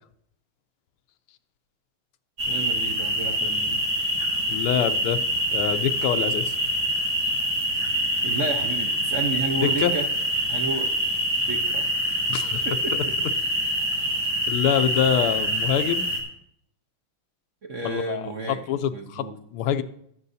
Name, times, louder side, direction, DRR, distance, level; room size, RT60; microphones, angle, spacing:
sound 1, 2.4-16.2, equal, 75° right, 2.9 m, -25 dB
voice 1, 2.5-3.8 8.2-10.1 10.5-10.9 11.4-12.2 12.6-13.1 17.6-18.6 18.9-19.3, right 3 dB, 55° right, 2 dB, 0.9 m, -32 dB
voice 2, 4.5-5.2 5.5-6.6 9.6-10.0 12.3-12.6 14.5-16.1 17.8-19.8, left 9 dB, 90° left, 10 dB, 1.6 m, -25 dB
18.5 x 7.8 x 2.7 m, 0.71 s
omnidirectional pair, 2.3 m